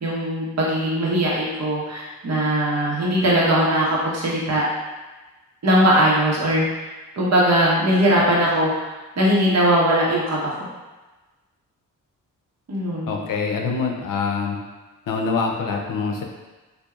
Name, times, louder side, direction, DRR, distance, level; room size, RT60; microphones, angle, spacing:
voice 1, 0.0-4.6 5.6-6.6 7.2-8.7 9.2-10.5 12.7-13.1, right 1 dB, 50° right, -6 dB, 1.3 m, -20 dB
voice 2, 13.1-14.6 15.1-16.2, left 4 dB, 70° left, 1 dB, 0.7 m, -24 dB
4.3 x 2.7 x 2.5 m, 1.2 s
cardioid pair, 75°, 34 cm